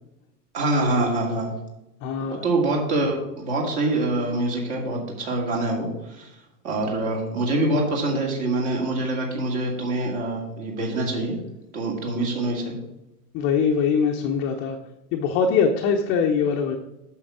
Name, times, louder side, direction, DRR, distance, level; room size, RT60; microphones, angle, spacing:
voice 1, 0.5-1.6 2.3-6.3 6.6-11.4 11.7-12.7, right 2 dB, 45° right, 0 dB, 2.3 m, -25 dB
voice 2, 2.0-2.5 13.3-14.8 15.1-16.8, left 6 dB, 25° left, 2 dB, 0.6 m, -22 dB
8.5 x 6.4 x 3.6 m, 0.92 s
figure-of-eight pair, 90°, 47 cm